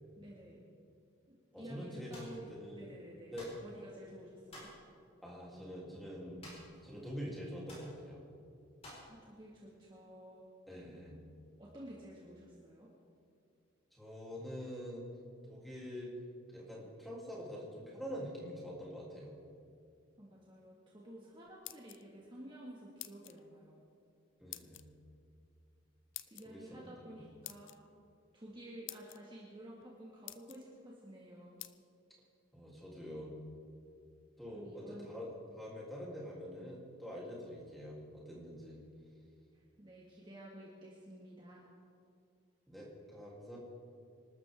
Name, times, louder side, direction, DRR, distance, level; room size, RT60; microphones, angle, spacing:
voice 1, 0.2-0.6 1.3-2.5 2.8-4.7 8.9-10.4 11.6-12.9 20.2-23.8 26.3-27.7 28.3-31.6 34.5-35.1 39.5-41.6, right 1 dB, 25° right, -5 dB, 2.0 m, -52 dB
voice 2, 1.5-2.1 2.5-3.0 3.3-3.5 5.2-6.4 6.8-8.2 10.7-11.2 13.9-15.1 15.5-16.1 16.5-19.3 24.4-24.9 26.4-27.2 32.5-33.3 34.4-38.8 42.7-43.6, equal, ahead, -5 dB, 3.5 m, -45 dB
sound 1, 2.1-2.4 3.4-3.6 4.5-4.8 6.4-6.8 7.1-7.2 7.7-7.9 8.8-9.1, left 1 dB, 30° left, 5.2 m, -52 dB
sound 2, 21.4-22.3 23.0-23.4 24.5-24.8 26.1-26.5 27.4-27.8 28.5-28.6 28.9-29.2 29.8-29.9 30.3-30.6 31.6-31.7, left 16 dB, 60° left, 0.5 m, -47 dB
26.0 x 12.5 x 3.8 m, 2.4 s
head